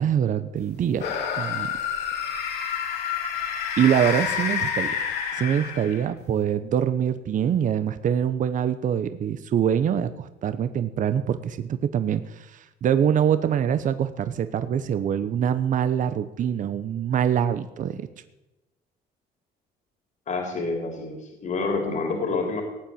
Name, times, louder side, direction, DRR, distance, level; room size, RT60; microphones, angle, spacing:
voice 1, 0.0-1.7 3.8-5.0 5.3-18.1, right 9 dB, 50° right, 12 dB, 1.0 m, -24 dB
sound 1, 1.0-6.2, left 7 dB, 80° left, 3.2 m, -28 dB
voice 2, 20.3-22.6, left 3 dB, 45° left, 3 dB, 3.4 m, -28 dB
18.0 x 9.3 x 8.6 m, 0.99 s
cardioid pair, 110°, 17 cm